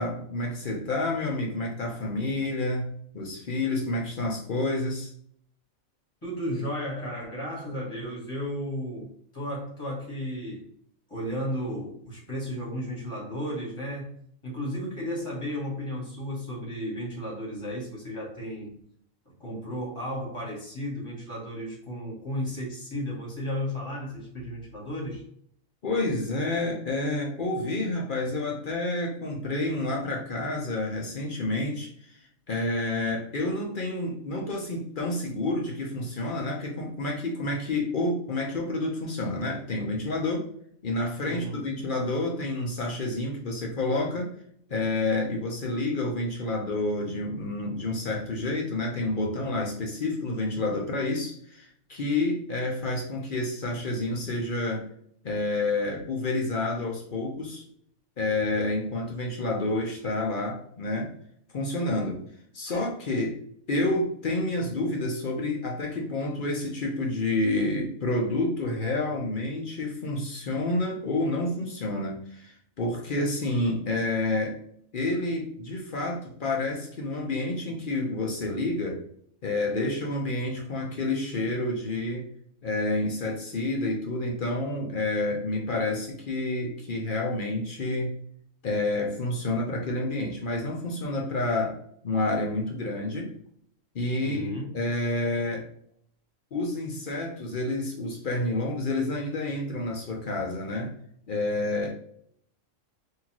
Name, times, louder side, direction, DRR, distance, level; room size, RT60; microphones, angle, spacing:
voice 1, 0.0-5.1 25.8-32.2 32.5-40.5 40.8-44.3 44.7-54.9 55.2-57.6 58.2-61.1 61.5-62.2 62.5-63.4 63.7-74.6 74.9-79.0 79.4-82.3 82.6-88.1 88.6-91.8 92.0-93.4 93.9-95.7 96.5-100.9 101.3-101.9, left 2 dB, 50° left, 0 dB, 0.7 m, -29 dB
voice 2, 6.2-10.7 11.1-14.1 14.4-18.7 19.4-25.2 41.3-41.6 94.2-94.8, equal, 20° left, -4 dB, 1.6 m, -34 dB
4.0 x 2.8 x 2.9 m, 0.65 s
omnidirectional pair, 1.5 m